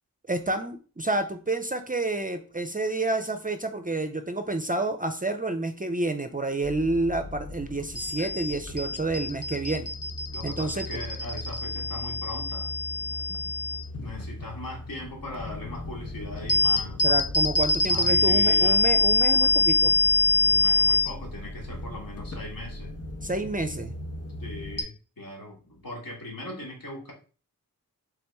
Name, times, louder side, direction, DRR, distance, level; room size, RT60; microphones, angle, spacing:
voice 1, 0.3-9.9 10.4-11.0 13.3-13.4 17.0-19.9 21.9-22.0 23.2-23.9, right 2 dB, 25° right, 7 dB, 0.4 m, -29 dB
sound 1, 6.6-24.8, left 3 dB, 40° left, 0.8 m, -26 dB
voice 2, 10.3-12.7 14.0-17.3 17.8-18.8 20.3-22.9 24.4-27.1, left 1 dB, 65° left, -1 dB, 1.5 m, -39 dB
3.6 x 2.9 x 3.4 m, 0.38 s
wide cardioid pair, 40°, 37 cm